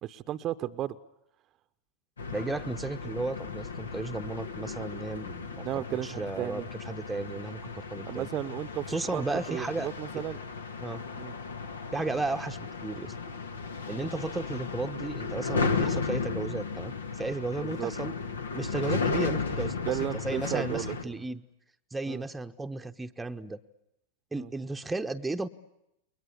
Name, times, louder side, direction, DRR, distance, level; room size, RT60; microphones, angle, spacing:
voice 1, 0.0-1.0 5.6-6.7 8.1-10.4 11.2-11.3 13.9-14.1 17.6-17.9 19.8-21.2 22.1-22.2 24.4-24.5, right 12 dB, 35° right, 12 dB, 0.9 m, -34 dB
sound 1, 2.2-21.0, left 4 dB, 70° left, 1.6 m, -35 dB
voice 2, 2.3-8.3 8.9-9.9 10.8-11.0 11.9-13.1 13.9-18.1 18.5-21.4 21.9-23.6 24.3-25.5, right 2 dB, 10° right, 6 dB, 1.0 m, -34 dB
29.5 x 22.5 x 8.3 m, 0.82 s
figure-of-eight pair, 90°, 0 cm